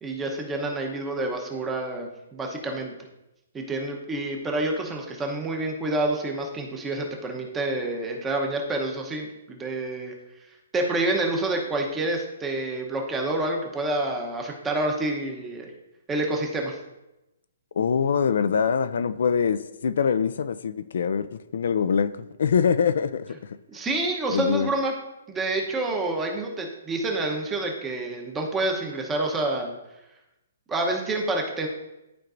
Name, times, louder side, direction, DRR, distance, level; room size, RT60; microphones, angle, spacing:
voice 1, 0.0-2.9 3.5-10.1 10.7-15.7 16.1-16.8 23.7-24.9 25.3-29.7 30.7-31.7, right 2 dB, 10° right, 0.9 m, -28 dB
voice 2, 17.8-23.6 24.3-24.7, left 6 dB, 65° left, 0.4 m, -24 dB
11.5 x 4.5 x 2.6 m
hypercardioid pair, 165°, 0 cm